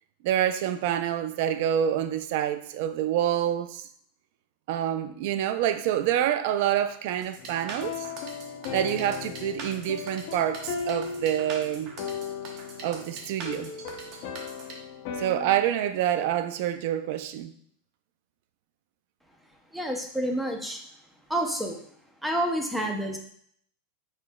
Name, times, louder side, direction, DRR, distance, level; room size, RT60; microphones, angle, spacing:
voice 1, 0.2-3.9 4.7-8.1 8.7-11.9 12.8-13.7 15.2-17.5, right 11 dB, 60° right, 0.3 m, -27 dB
sound 1, 7.2-14.7, right 4 dB, 40° right, 0.8 m, -42 dB
sound 2, 7.4-15.6, left 6 dB, 50° left, 0.6 m, -37 dB
voice 2, 19.7-20.8 21.3-21.8 22.2-23.2, right 1 dB, 5° right, 0.5 m, -28 dB
4.5 x 4.3 x 2.2 m
supercardioid pair, 150°, 0 cm